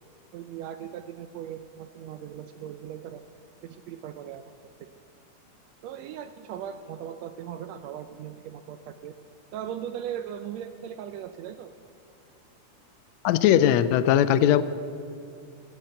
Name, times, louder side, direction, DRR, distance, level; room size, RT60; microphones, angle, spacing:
voice 1, 0.3-3.2 3.6-4.5 5.8-9.1 9.5-11.7, right 9 dB, 80° right, 9 dB, 1.5 m, -38 dB
voice 2, 13.2-14.6, left 11 dB, 80° left, 14 dB, 1.6 m, -19 dB
16.5 x 7.4 x 7.8 m, 2.7 s
omnidirectional pair, 3.5 m